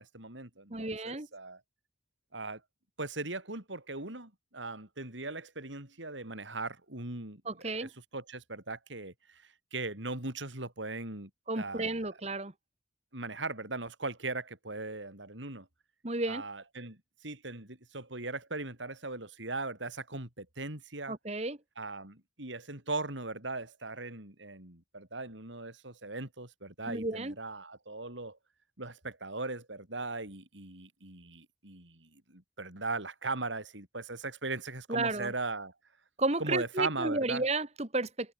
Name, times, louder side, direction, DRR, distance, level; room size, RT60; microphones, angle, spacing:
voice 1, 0.0-1.6 2.3-2.6 3.0-11.3 11.6-12.1 13.1-15.7 16.3-21.2 21.8-28.4 28.8-35.7 36.4-37.4, right 3 dB, 85° right, 6.0 m, -39 dB
voice 2, 0.7-1.3 7.4-7.9 11.5-12.5 16.0-16.4 21.1-21.6 26.9-27.3 34.9-35.3 36.2-38.3, right 2 dB, 35° right, 1.7 m, -32 dB
head